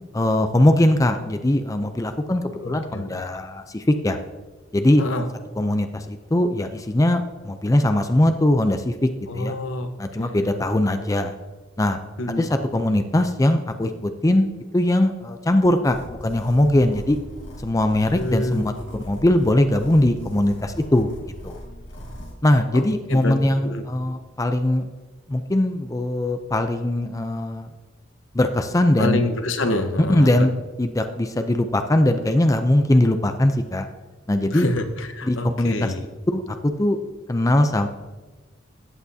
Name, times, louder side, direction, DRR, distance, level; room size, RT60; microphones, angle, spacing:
voice 1, 0.1-4.2 4.7-5.0 5.6-8.9 9.3-9.5 10.0-11.3 11.8-12.0 12.4-14.5 14.7-17.2 17.6-18.7 19.1-21.1 21.4-21.6 22.4-24.9 25.3-27.7 28.3-29.2 30.0-30.5 30.8-33.9 34.3-34.7 35.2-35.9 36.3-37.0 37.3-37.9, left 1 dB, 15° left, 7 dB, 0.5 m, -20 dB
voice 2, 2.6-3.2 5.0-5.3 9.3-9.9 10.2-10.6 12.2-12.5 18.1-18.7 22.7-23.4 23.6-23.9 29.0-30.3 34.5-36.0, left 2 dB, 80° left, 7 dB, 1.1 m, -27 dB
sound 1, 15.9-22.3, equal, 65° left, 2.2 m, -39 dB
14.5 x 8.6 x 2.8 m, 1.2 s
head